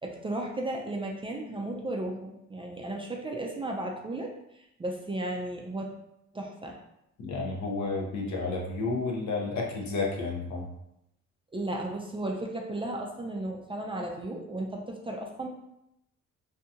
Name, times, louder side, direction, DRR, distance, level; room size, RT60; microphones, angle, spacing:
voice 1, 0.0-4.3 4.8-5.9 6.3-6.8 11.5-15.5, right 1 dB, 20° right, 0 dB, 0.4 m, -34 dB
voice 2, 7.2-10.7, left 3 dB, 70° left, 0 dB, 0.8 m, -31 dB
2.7 x 2.3 x 2.7 m, 0.82 s
cardioid pair, 90°, 30 cm